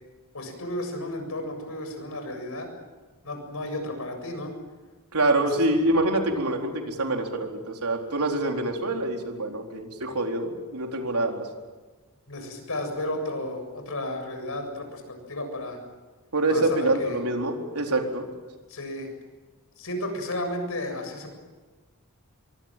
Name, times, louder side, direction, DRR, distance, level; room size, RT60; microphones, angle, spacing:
voice 1, 0.3-2.7 3.2-4.5 5.4-5.5 12.3-15.8 16.5-17.2 18.7-19.1 19.8-21.3, left 1 dB, 70° left, 5 dB, 7.4 m, -33 dB
voice 2, 5.1-11.5 16.3-18.3, right 2 dB, 90° right, 2 dB, 4.2 m, -25 dB
24.5 x 24.0 x 7.6 m, 1.3 s
head